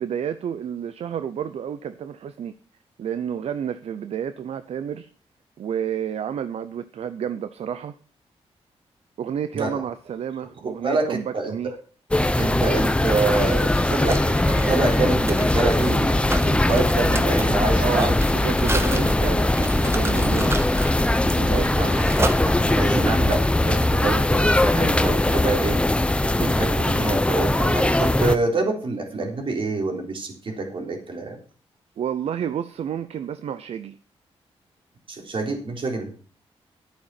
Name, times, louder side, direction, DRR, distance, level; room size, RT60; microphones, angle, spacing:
voice 1, 0.0-2.5 3.0-5.1 5.6-7.9 9.2-11.7 17.8-20.7 21.4-21.9 32.0-34.0, right 8 dB, 75° right, 12 dB, 0.7 m, -30 dB
voice 2, 9.5-9.9 10.8-11.5 12.4-18.2 18.8-18.9 21.8-21.9 22.4-25.8 26.2-31.4 35.1-36.1, right 3 dB, 55° right, 2 dB, 3.7 m, -26 dB
sound 1, 12.1-28.4, left 1 dB, 10° left, 0.8 m, -20 dB
Mechanisms, 13.2-23.0, right 2 dB, 25° right, 1.5 m, -33 dB
11.5 x 8.7 x 5.8 m, 0.40 s
cardioid pair, 95°, 11 cm